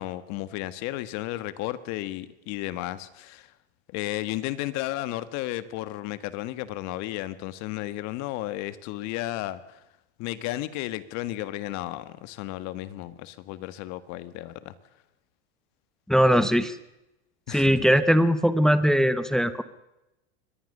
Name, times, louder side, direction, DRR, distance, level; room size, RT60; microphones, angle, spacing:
voice 1, 0.0-3.5 3.9-9.8 10.2-14.7 17.5-18.0, left 15 dB, 50° left, 14 dB, 1.7 m, -33 dB
voice 2, 16.1-16.7 17.5-19.6, equal, ahead, 13 dB, 0.9 m, -20 dB
24.0 x 20.0 x 6.7 m, 0.94 s
supercardioid pair, 130°, 35 cm